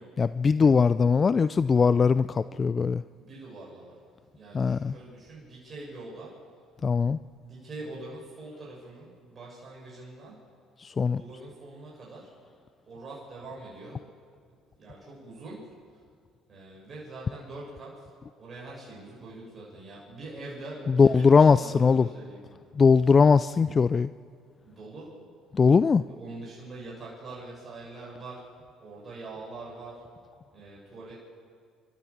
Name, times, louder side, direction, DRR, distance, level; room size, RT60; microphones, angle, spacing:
voice 1, 0.2-3.0 4.5-5.0 6.8-7.2 10.8-11.2 20.9-22.1 22.7-24.1 25.5-26.0, left 5 dB, 35° left, 15 dB, 0.4 m, -20 dB
voice 2, 3.1-4.0 4.3-6.4 7.4-10.4 11.0-12.3 12.9-14.0 14.7-16.0 16.5-22.4 24.6-25.2 26.1-28.5 28.8-30.0 30.5-31.1, right 2 dB, 40° right, -5 dB, 7.4 m, -43 dB
29.5 x 13.5 x 7.3 m, 2.1 s
hypercardioid pair, 65°, 0 cm